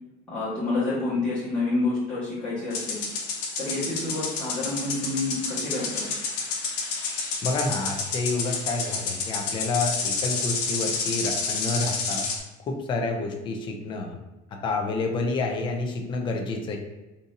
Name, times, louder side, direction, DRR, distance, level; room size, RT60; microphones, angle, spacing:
voice 1, 0.3-3.0 3.6-6.0, left 2 dB, 5° left, -12 dB, 1.3 m, -28 dB
sound 1, 2.7-12.4, left 4 dB, 85° left, 0.9 m, -30 dB
voice 2, 7.4-12.3 12.7-14.2 14.5-16.8, left 3 dB, 25° left, 3 dB, 0.4 m, -29 dB
3.9 x 2.7 x 2.5 m, 1.1 s
cardioid pair, 175°, 19 cm